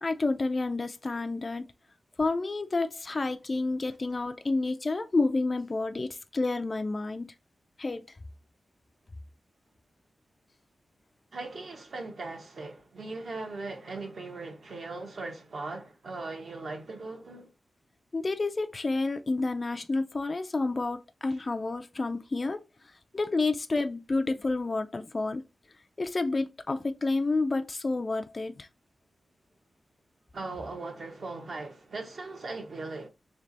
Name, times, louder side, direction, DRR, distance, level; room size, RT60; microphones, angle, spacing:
voice 1, 0.0-1.7 2.2-7.3 7.8-8.1 18.1-25.4 26.0-28.7, left 3 dB, 30° left, 0.3 m, -30 dB
voice 2, 11.3-17.5 30.3-33.1, right 3 dB, 60° right, 1.1 m, -39 dB
3.3 x 3.2 x 3.9 m
wide cardioid pair, 135°, 0 cm